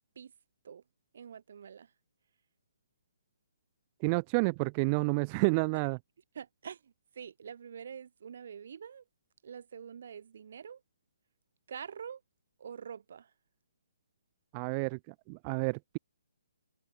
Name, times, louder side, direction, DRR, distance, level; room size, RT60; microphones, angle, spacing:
voice 1, 1.1-1.9 5.7-5.8 6.3-9.0 9.4-10.8 11.7-12.2 12.6-13.3, right 7 dB, 60° right, 2.8 m, -46 dB
voice 2, 4.0-6.0 14.5-16.0, right 31 dB, 30° right, 0.5 m, -30 dB
hypercardioid pair, 150°, 0 cm